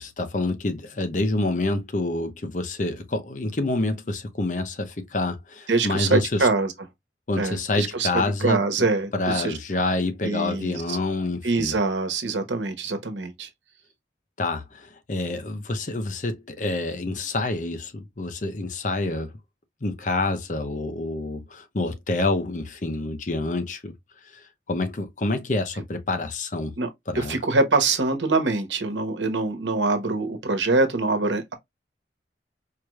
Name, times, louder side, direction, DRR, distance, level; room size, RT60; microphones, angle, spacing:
voice 1, 0.0-6.5 7.3-8.6 9.1-11.8 14.4-19.3 19.8-23.9 24.3-26.8 27.1-27.4, left 2 dB, 45° left, 0.7 m, -27 dB
voice 2, 5.7-6.7 7.4-9.5 10.2-11.0 11.4-13.5 26.8-26.9 27.1-31.5, right 3 dB, 90° right, 1.1 m, -24 dB
4.6 x 3.1 x 2.3 m
head